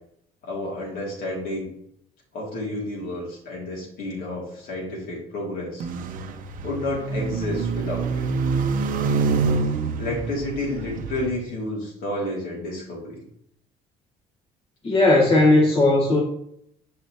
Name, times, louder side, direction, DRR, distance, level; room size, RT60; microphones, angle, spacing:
voice 1, 0.4-1.7 2.3-5.9 6.6-8.3 10.0-13.2, left 1 dB, 70° left, -3 dB, 2.8 m, -30 dB
sound 1, 5.8-11.3, right 4 dB, 65° right, 0.7 m, -26 dB
voice 2, 14.8-16.2, left 2 dB, 40° left, -4 dB, 1.5 m, -17 dB
6.3 x 5.8 x 2.9 m, 0.72 s
supercardioid pair, 90°, 15 cm